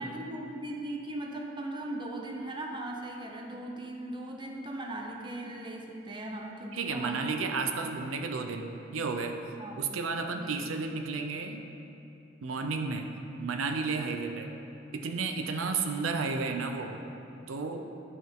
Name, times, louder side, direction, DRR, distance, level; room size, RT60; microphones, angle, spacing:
voice 1, 0.0-7.7 9.6-9.8 10.3-10.5, right 1 dB, 25° right, 1 dB, 0.7 m, -38 dB
voice 2, 6.7-9.4 9.8-11.6 12.4-13.1 13.4-14.5 14.9-17.0 17.5-17.9, right 4 dB, 85° right, 5 dB, 0.5 m, -32 dB
11.0 x 5.6 x 3.6 m, 2.8 s
head